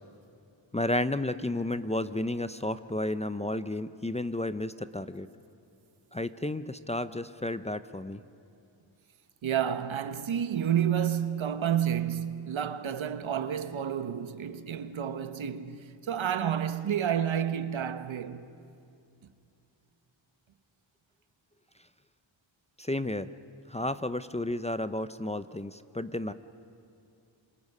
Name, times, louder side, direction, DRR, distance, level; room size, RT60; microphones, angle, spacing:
voice 1, 0.7-5.3 6.1-8.2 22.8-23.3 23.7-26.3, left 1 dB, 15° left, 0.6 m, -32 dB
voice 2, 9.4-18.4, right 9 dB, 75° right, 1.1 m, -30 dB
27.0 x 26.5 x 5.5 m
wide cardioid pair, 80°, 48 cm